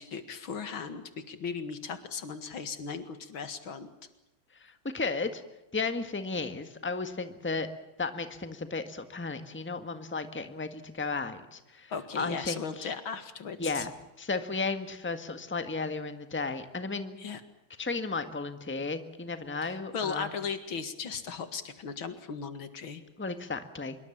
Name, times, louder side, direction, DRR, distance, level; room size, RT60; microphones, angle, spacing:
voice 1, 0.0-3.9 11.9-13.9 17.2-17.4 19.6-23.0, left 6 dB, 80° left, 10 dB, 2.7 m, -37 dB
voice 2, 4.6-5.4 5.7-7.7 8.0-12.9 13.6-13.9 14.2-17.2 17.8-20.3 23.2-24.0, left 3 dB, 5° left, 9 dB, 1.5 m, -34 dB
25.5 x 23.0 x 7.3 m, 0.96 s
omnidirectional pair, 2.2 m